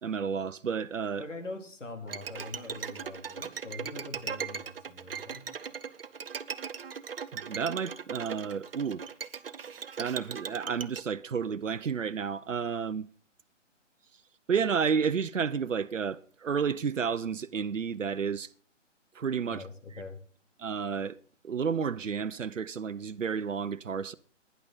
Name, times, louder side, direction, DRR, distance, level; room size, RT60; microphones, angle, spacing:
voice 1, 0.0-1.2 7.3-9.0 10.0-13.1 14.5-18.5 19.1-19.6 20.6-21.2 21.4-24.1, right 6 dB, 80° right, 0.8 m, -31 dB
voice 2, 1.2-5.5 19.5-20.2, left 2 dB, 75° left, 3.7 m, -43 dB
Bowed string instrument, 2.1-11.0, right 7 dB, 50° right, 0.9 m, -39 dB
18.0 x 10.5 x 4.1 m
figure-of-eight pair, 145°, 37 cm